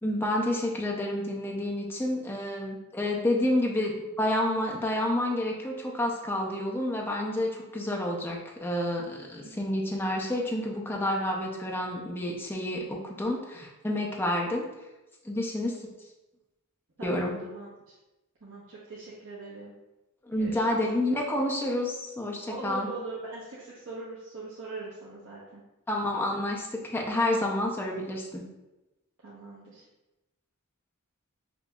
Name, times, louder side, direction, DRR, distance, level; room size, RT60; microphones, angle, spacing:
voice 1, 0.0-14.7 15.2-15.9 17.0-17.3 20.3-22.9 25.9-28.4, left 1 dB, 10° left, -1 dB, 0.5 m, -29 dB
voice 2, 17.0-17.9 18.4-19.7 20.4-20.7 22.5-25.6 29.2-29.8, right 3 dB, 65° right, -8 dB, 0.8 m, -41 dB
5.9 x 2.7 x 2.3 m, 1.0 s
head